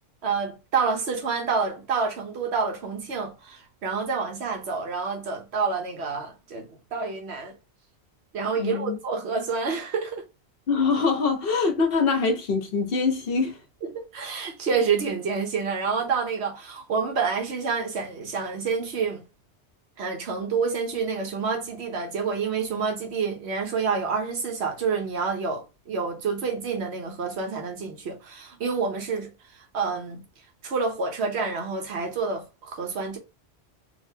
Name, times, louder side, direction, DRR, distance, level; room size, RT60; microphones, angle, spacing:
voice 1, 0.2-7.5 8.3-10.2 13.9-19.2 20.0-30.2 30.6-33.2, right 5 dB, 75° right, 1.1 m, -28 dB
voice 2, 8.6-9.0 10.7-13.6, left 4 dB, 60° left, 0.9 m, -24 dB
3.5 x 2.7 x 2.7 m
omnidirectional pair, 1.1 m